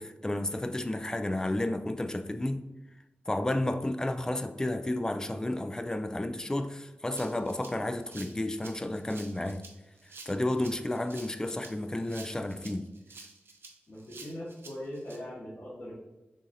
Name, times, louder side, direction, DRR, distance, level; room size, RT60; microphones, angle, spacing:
voice 1, 0.0-2.6 3.3-9.7 10.3-12.9, left 1 dB, 15° left, 0.3 m, -32 dB
Rattle (instrument), 7.2-15.2, right 3 dB, 75° right, 0.7 m, -50 dB
voice 2, 13.9-15.9, equal, 60° left, 1.4 m, -40 dB
6.9 x 2.5 x 2.7 m
wide cardioid pair, 95°, 4 cm